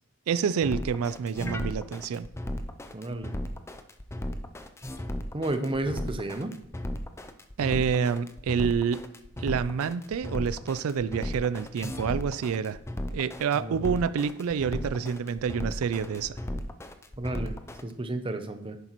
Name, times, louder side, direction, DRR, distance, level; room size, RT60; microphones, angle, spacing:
voice 1, 0.3-2.3 7.6-9.0 9.4-12.8 13.1-16.4, right 6 dB, 75° right, 14 dB, 0.4 m, -28 dB
sound 1, 0.6-17.8, left 1 dB, 10° left, 0.5 m, -35 dB
voice 2, 2.9-3.3 5.3-6.5 13.5-13.9 17.2-18.8, right 2 dB, 25° right, 7 dB, 0.7 m, -32 dB
10.5 x 8.1 x 3.0 m, 0.77 s
head